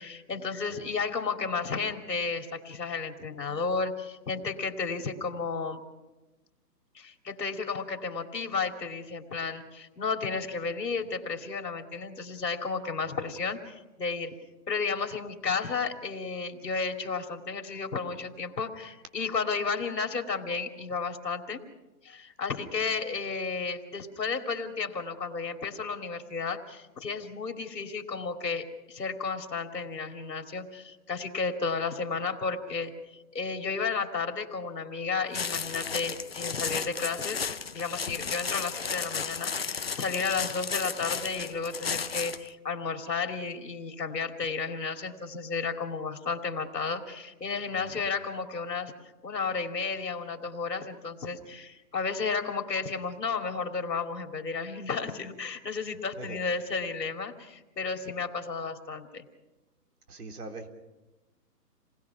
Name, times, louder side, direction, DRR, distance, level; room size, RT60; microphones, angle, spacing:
voice 1, 0.0-5.8 6.9-14.3 14.7-21.6 22.0-37.4 37.7-48.9 49.2-59.2, left 5 dB, 75° left, 4 dB, 2.9 m, -33 dB
sound 1, 35.3-42.5, left 5 dB, 40° left, 0.7 m, -34 dB
voice 2, 60.1-60.7, right 3 dB, 65° right, 4 dB, 3.7 m, -42 dB
29.0 x 20.0 x 5.9 m, 1.1 s
hypercardioid pair, 170°, 49 cm